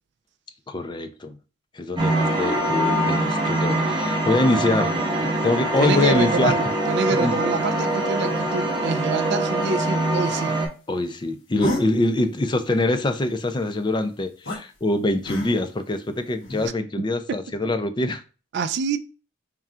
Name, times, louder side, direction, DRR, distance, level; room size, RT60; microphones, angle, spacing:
voice 1, 0.7-1.4 1.7-6.6 7.1-7.3 10.9-18.2, left 2 dB, 25° left, 0.4 m, -24 dB
sound 1, 2.0-10.7, right 1 dB, 20° right, 0.8 m, -23 dB
voice 2, 5.8-10.6 17.0-17.4 18.5-19.0, right 5 dB, 55° right, 0.3 m, -26 dB
sound 2, 11.6-11.8 14.4-14.6 15.2-15.7 16.4-16.7, left 1 dB, 75° left, 1.4 m, -29 dB
3.7 x 2.3 x 4.2 m
head